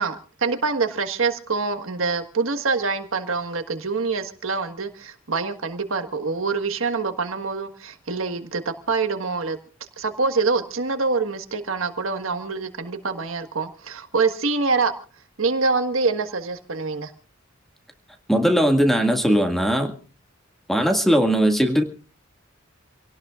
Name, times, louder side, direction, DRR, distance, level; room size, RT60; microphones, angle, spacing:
voice 1, 0.0-9.6 10.0-14.9 15.4-17.1, right 4 dB, 75° right, 8 dB, 1.6 m, -25 dB
voice 2, 18.3-19.9 20.7-21.8, equal, ahead, 4 dB, 1.9 m, -19 dB
27.0 x 17.5 x 2.4 m, 0.39 s
head